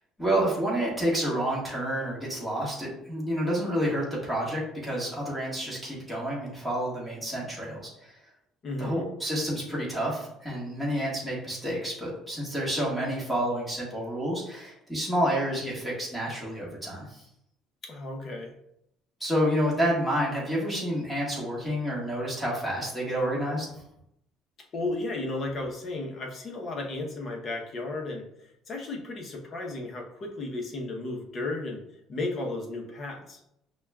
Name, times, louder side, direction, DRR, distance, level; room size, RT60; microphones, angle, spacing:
voice 1, 0.2-8.1 8.8-17.2 19.2-23.7, equal, ahead, -6 dB, 1.5 m, -29 dB
voice 2, 8.6-9.0 17.8-18.5 24.7-31.8 32.1-33.4, left 2 dB, 40° left, 1 dB, 0.8 m, -34 dB
5.8 x 2.3 x 2.3 m, 0.78 s
cardioid pair, 120°, 0 cm